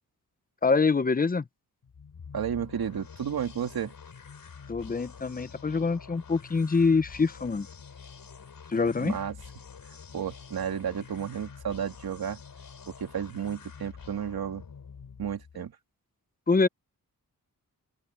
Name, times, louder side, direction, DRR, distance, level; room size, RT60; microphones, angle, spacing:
voice 1, 0.6-1.4 4.7-7.7 8.7-9.2 16.5-16.7, left 4 dB, 25° left, 0.7 m, -25 dB
sound 1, 1.8-15.6, left 6 dB, 65° left, 4.4 m, -47 dB
voice 2, 2.3-3.9 9.0-9.4 10.1-12.4 12.9-14.6 15.2-15.8, right 8 dB, 90° right, 2.5 m, -32 dB
wide cardioid pair, 100°, 36 cm